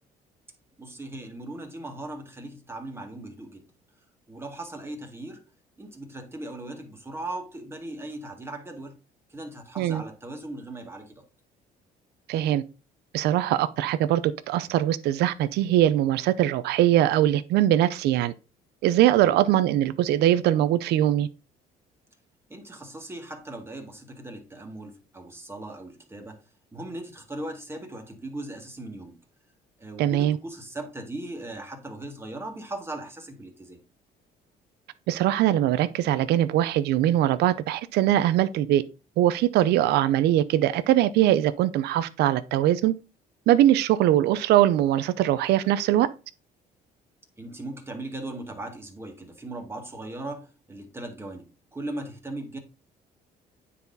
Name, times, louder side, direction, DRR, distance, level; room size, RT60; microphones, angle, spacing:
voice 1, 0.8-3.6 4.3-5.4 5.8-9.0 9.3-11.3 19.1-19.3 22.5-26.4 26.7-29.2 29.8-33.8 47.4-52.6, right 2 dB, 15° right, 2.0 m, -38 dB
voice 2, 12.3-12.6 13.1-18.3 18.8-21.3 30.0-30.4 35.1-38.8 39.2-42.9 43.5-46.1, right 12 dB, 75° right, 0.6 m, -22 dB
9.4 x 4.2 x 4.0 m
cardioid pair, 110°, 17 cm